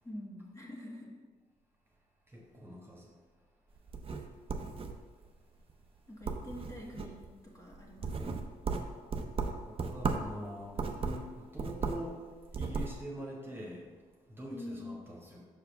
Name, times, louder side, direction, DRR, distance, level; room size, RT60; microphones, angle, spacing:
voice 1, 0.0-1.2 6.1-8.5 14.5-15.0, left 1 dB, 20° left, -3 dB, 1.3 m, -46 dB
voice 2, 2.3-3.1 9.7-12.2 12.5-13.9 14.3-15.4, equal, 15° right, -3 dB, 1.5 m, -44 dB
sound 1, 3.8-5.3 5.7-6.0 6.2-7.3 7.7-10.4 10.7-12.1 12.4-13.0, right 4 dB, 40° right, 0.6 m, -36 dB
6.0 x 4.7 x 3.4 m, 1.5 s
supercardioid pair, 70°, 15 cm